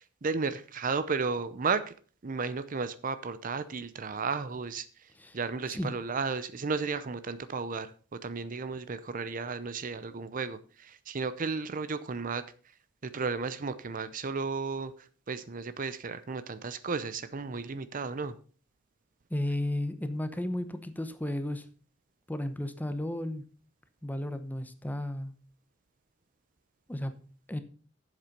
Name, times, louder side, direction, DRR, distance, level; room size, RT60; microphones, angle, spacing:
voice 1, 0.0-1.9 2.2-12.4 13.0-18.4, right 4 dB, 45° right, 14 dB, 0.6 m, -34 dB
voice 2, 19.3-21.7 22.3-23.4 24.0-25.4 26.9-27.2 27.5-27.6, left 1 dB, 10° left, 10 dB, 0.8 m, -33 dB
8.2 x 7.4 x 5.2 m, 0.40 s
head